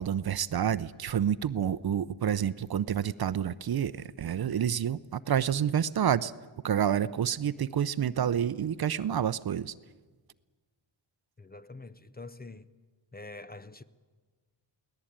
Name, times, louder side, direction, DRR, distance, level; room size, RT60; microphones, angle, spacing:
voice 1, 0.0-6.3 6.6-9.7, right 9 dB, 50° right, 0.7 m, -28 dB
voice 2, 11.4-12.7 13.1-13.8, left 3 dB, 20° left, 0.7 m, -45 dB
23.0 x 18.0 x 8.8 m
cardioid pair, 90°, 47 cm